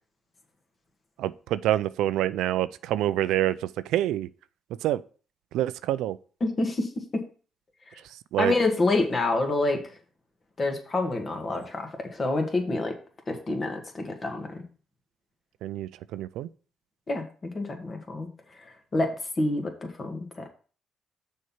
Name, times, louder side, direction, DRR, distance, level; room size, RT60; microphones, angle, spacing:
voice 1, 1.2-4.3 4.8-5.0 5.5-6.2 8.3-8.5 15.6-16.5, right 13 dB, 90° right, 0.4 m, -27 dB
voice 2, 6.4-7.2 8.4-9.8 10.6-12.9 13.3-14.6 17.1-20.5, left 2 dB, 35° left, 1.9 m, -28 dB
6.5 x 4.5 x 5.5 m
cardioid pair, 90°, 0 cm